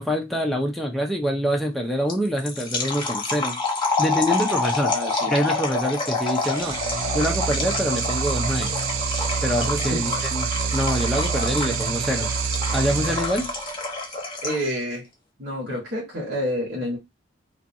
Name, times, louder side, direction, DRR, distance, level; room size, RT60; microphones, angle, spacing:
voice 1, 0.0-3.6 4.0-4.9 5.3-6.8 7.1-8.7 9.4-12.3 12.7-13.5, equal, ahead, 0.4 m, -25 dB
sound 1, 2.1-14.7, left 3 dB, 25° left, 0.8 m, -28 dB
voice 2, 4.9-5.3 9.9-10.0 14.4-15.1 15.4-17.0, equal, 55° right, 1.2 m, -28 dB
sound 2, 6.4-14.0, right 6 dB, 85° right, 0.4 m, -27 dB
2.5 x 2.3 x 2.6 m
head